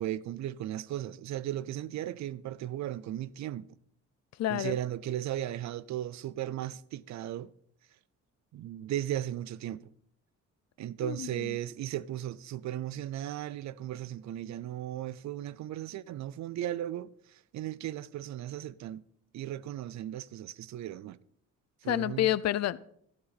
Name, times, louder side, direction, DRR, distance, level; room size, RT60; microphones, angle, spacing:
voice 1, 0.0-3.7 4.5-7.5 8.5-9.9 10.8-19.0 19.3-21.2 21.8-22.3, right 12 dB, 65° right, 0.6 m, -36 dB
voice 2, 4.4-4.8 11.0-11.6 21.9-22.8, left 13 dB, 60° left, 0.6 m, -29 dB
12.5 x 11.5 x 4.2 m
cardioid pair, 90°, 30 cm